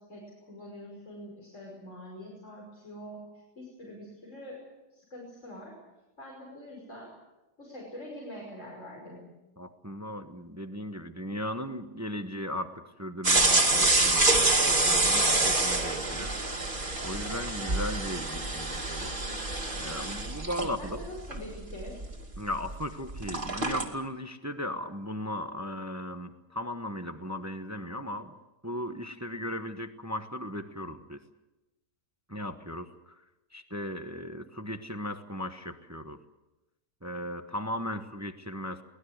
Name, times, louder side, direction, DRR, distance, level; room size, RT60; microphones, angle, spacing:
voice 1, 0.0-5.8 6.2-7.1 7.6-9.3 20.6-22.0, left 1 dB, 45° left, -3 dB, 6.0 m, -45 dB
voice 2, 9.6-16.5 17.0-19.2 19.8-21.0 22.4-28.4 28.6-31.2 32.3-33.1 33.5-36.2 37.0-38.8, equal, 10° right, 8 dB, 0.9 m, -37 dB
sound 1, 13.2-22.8 23.1-23.8, right 2 dB, 30° right, 2.7 m, -27 dB
23.5 x 19.5 x 8.1 m, 1.0 s
omnidirectional pair, 1.8 m